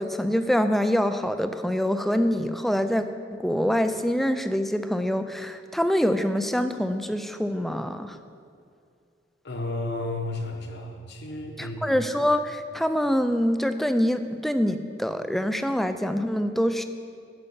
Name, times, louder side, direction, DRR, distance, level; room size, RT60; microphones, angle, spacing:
voice 1, 0.0-3.1 3.4-8.2 11.6-16.8, equal, ahead, 9 dB, 0.4 m, -25 dB
voice 2, 9.4-12.0, left 2 dB, 65° left, 3 dB, 1.1 m, -32 dB
12.5 x 5.6 x 5.5 m, 2.3 s
head